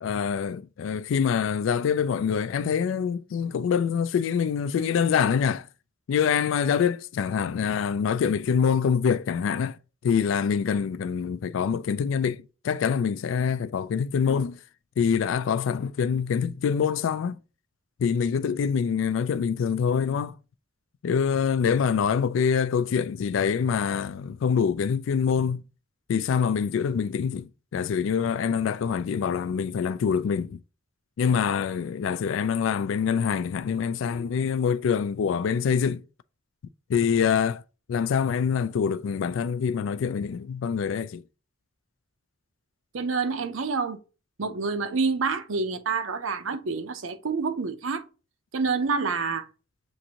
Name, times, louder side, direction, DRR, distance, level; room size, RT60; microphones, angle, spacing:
voice 1, 0.0-5.7 6.1-9.8 10.0-14.6 15.0-17.4 18.0-20.3 21.0-25.6 26.1-30.6 31.2-36.0 36.9-37.6 37.9-41.2, left 7 dB, 75° left, 0.3 m, -25 dB
voice 2, 42.9-44.0 44.4-48.0 48.5-49.4, right 4 dB, 85° right, 0.6 m, -27 dB
7.0 x 2.6 x 2.9 m
head